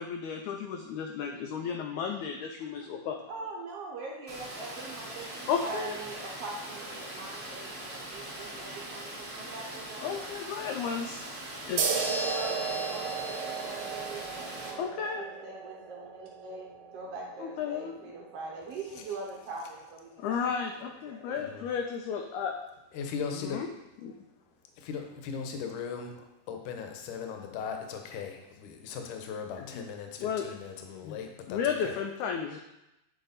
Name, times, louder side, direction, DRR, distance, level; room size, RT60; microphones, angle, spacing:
voice 1, 0.0-3.3 5.5-6.0 10.0-11.2 11.7-14.0 14.8-15.3 17.4-17.9 20.2-22.6 23.5-23.7 24.0-24.1 29.7-29.8 30.2-30.5 31.0-31.2 31.5-32.6, left 6 dB, 85° left, 4 dB, 1.7 m, -34 dB
voice 2, 3.3-10.3 11.9-16.7 16.9-21.4, right 3 dB, 70° right, -2 dB, 1.5 m, -42 dB
Water, 4.3-14.7, right 1 dB, 35° right, 1.0 m, -41 dB
sound 1, 11.8-18.9, right 6 dB, 90° right, 1.3 m, -35 dB
voice 3, 21.4-21.7 22.9-23.6 24.7-32.0, left 6 dB, 70° left, 4 dB, 2.1 m, -38 dB
9.4 x 4.6 x 4.0 m, 0.93 s
omnidirectional pair, 3.9 m